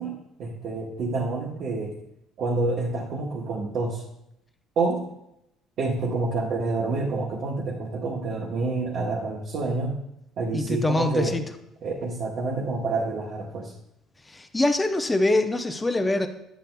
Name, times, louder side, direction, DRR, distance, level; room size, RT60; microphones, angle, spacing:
voice 1, 0.0-1.9 2.4-4.0 4.8-5.1 5.8-10.0 10.4-11.4 11.8-13.7, right 3 dB, 60° right, -2 dB, 0.9 m, -28 dB
voice 2, 10.5-11.4 14.3-16.3, left 2 dB, 15° left, 6 dB, 0.5 m, -24 dB
9.0 x 6.6 x 2.2 m, 0.82 s
cardioid pair, 95°, 0 cm